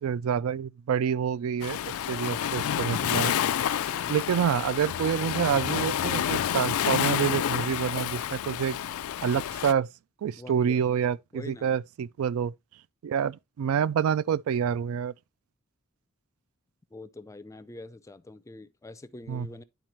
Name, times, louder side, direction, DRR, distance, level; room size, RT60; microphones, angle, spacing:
voice 1, 0.0-3.3 4.1-8.8 9.2-9.9 10.2-12.5 13.0-15.1 19.3-19.5, right 8 dB, 75° right, 0.3 m, -27 dB
Waves surf, 1.6-9.7, left 10 dB, 80° left, 0.3 m, -29 dB
voice 2, 3.9-4.2 10.4-10.8 11.3-11.8 16.9-19.6, left 2 dB, 15° left, 0.4 m, -45 dB
10.5 x 4.3 x 2.9 m
head